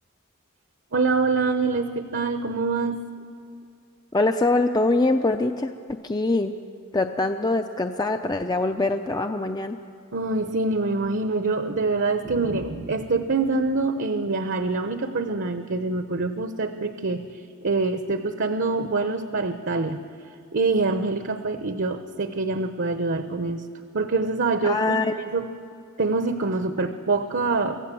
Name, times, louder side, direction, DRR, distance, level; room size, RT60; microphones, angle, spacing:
voice 1, 0.9-3.0 10.1-20.0 20.5-23.6 23.9-25.5 26.0-27.8, right 3 dB, 55° right, 8 dB, 0.9 m, -25 dB
voice 2, 4.1-5.7 6.0-6.5 6.9-9.8 24.6-25.1, left 2 dB, 20° left, 6 dB, 0.6 m, -23 dB
25.0 x 16.0 x 7.7 m, 2.5 s
head